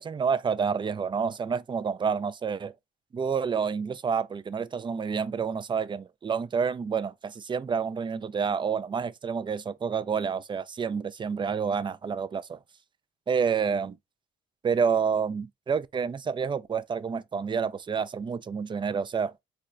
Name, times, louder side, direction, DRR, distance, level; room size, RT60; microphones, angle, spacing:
voice 1, 0.0-2.7 3.1-12.6 13.3-14.0 14.6-19.3, right 6 dB, 25° right, 0.3 m, -29 dB
4.0 x 2.3 x 2.5 m
cardioid pair, 90°, 20 cm